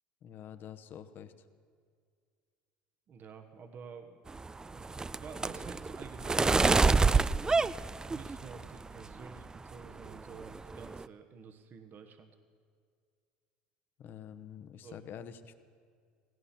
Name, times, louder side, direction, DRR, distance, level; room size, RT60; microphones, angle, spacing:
voice 1, 0.2-1.5 14.0-15.5, left 8 dB, 50° left, 11 dB, 1.0 m, -47 dB
voice 2, 3.1-4.2 4.7-7.6 8.0-12.3 14.8-15.0, right 5 dB, 45° right, 6 dB, 1.1 m, -50 dB
sound 1, 4.3-8.7 9.1-9.6 9.8-10.1 10.4-11.0, right 4 dB, 15° right, 0.3 m, -27 dB
17.0 x 17.0 x 4.3 m, 2.1 s
hypercardioid pair, 85°, 4 cm